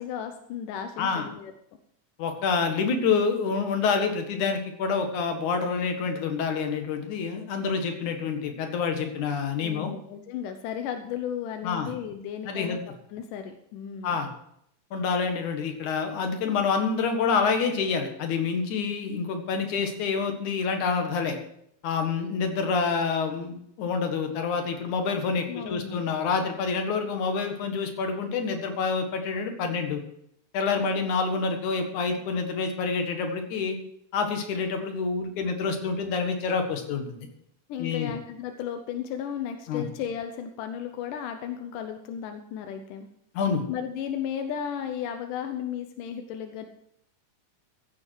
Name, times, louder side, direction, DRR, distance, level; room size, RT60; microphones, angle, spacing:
voice 1, 0.0-1.5 9.6-12.8 13.1-14.2 25.5-26.1 37.7-43.1 43.7-46.7, left 8 dB, 90° left, 6 dB, 2.5 m, -34 dB
voice 2, 2.2-9.9 11.6-11.9 12.4-12.8 14.0-14.3 14.9-21.4 21.8-30.0 30.5-33.8 34.1-37.3 37.8-38.1 39.7-39.9 43.3-43.6, left 5 dB, 70° left, 4 dB, 3.1 m, -27 dB
15.0 x 9.7 x 4.7 m, 0.73 s
omnidirectional pair, 3.6 m